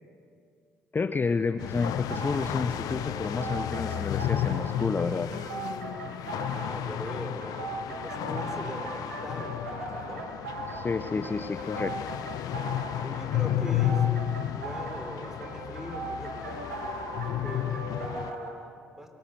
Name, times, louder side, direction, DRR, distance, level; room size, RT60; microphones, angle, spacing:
voice 1, 0.9-5.4 10.7-12.0, left 4 dB, 30° left, 12 dB, 0.7 m, -30 dB
sound 1, 1.6-18.3, left 12 dB, 60° left, 0.7 m, -32 dB
sound 2, 1.8-18.5, right 3 dB, 85° right, 1.8 m, -39 dB
voice 2, 6.4-10.4 13.0-16.7 17.4-19.1, equal, 5° right, 5 dB, 3.9 m, -41 dB
23.0 x 19.0 x 8.1 m, 2.2 s
figure-of-eight pair, 45°, 7 cm